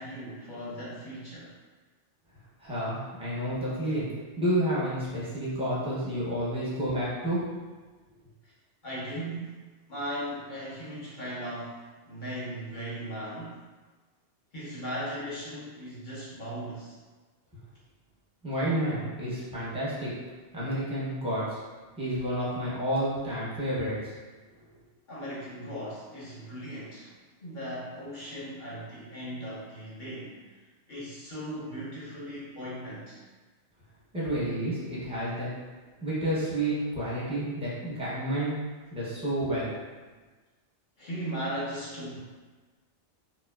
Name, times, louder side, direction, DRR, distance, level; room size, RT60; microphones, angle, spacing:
voice 1, 0.0-1.5 8.4-8.5 8.8-9.6 9.9-11.8 12.0-13.6 14.5-17.0 25.1-27.1 27.4-30.5 30.9-33.2 41.0-42.2, equal, 50° left, -8 dB, 0.8 m, -37 dB
voice 2, 2.6-4.1 4.4-7.4 18.4-20.1 20.5-21.6 22.0-24.1 24.7-24.8 34.1-35.5 36.0-38.6 38.9-39.7, right 1 dB, 5° right, -10 dB, 0.5 m, -30 dB
2.6 x 2.2 x 2.2 m, 1.3 s
omnidirectional pair, 1.2 m